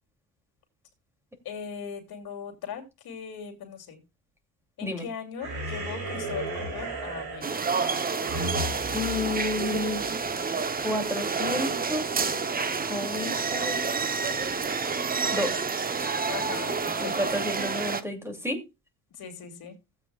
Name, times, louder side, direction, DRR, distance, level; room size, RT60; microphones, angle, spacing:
voice 1, 1.4-4.0 4.8-7.7 16.3-17.4 19.1-19.7, left 7 dB, 70° left, 2.8 m, -39 dB
sound 1, 5.4-10.1, right 1 dB, 80° right, 7.8 m, -35 dB
sound 2, 7.4-18.0, right 5 dB, 25° right, 0.8 m, -29 dB
voice 2, 8.9-10.0 10.8-12.1 12.9-13.8 15.3-15.5 16.0-16.1 17.0-18.6, left 2 dB, 5° right, 2.6 m, -31 dB
16.0 x 8.2 x 2.3 m
cardioid pair, 115°, 39 cm